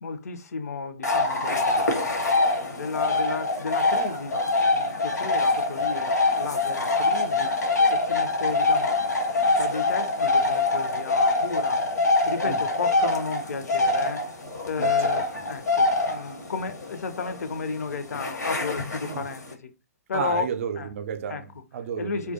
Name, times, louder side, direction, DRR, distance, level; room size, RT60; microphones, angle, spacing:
voice 1, 0.0-2.3 2.7-7.6 7.9-11.8 12.2-14.3 14.6-15.2 15.5-19.7 20.1-20.4 20.8-20.9 21.3-21.4 22.0-22.3, left 5 dB, 65° left, 0.5 m, -33 dB
sound 1, 1.0-19.5, left 2 dB, 85° left, 0.9 m, -24 dB
voice 2, 14.8-15.2 19.0-19.2 20.1-22.3, right 8 dB, 50° right, 0.4 m, -32 dB
2.2 x 2.1 x 2.7 m
figure-of-eight pair, 130°, 9 cm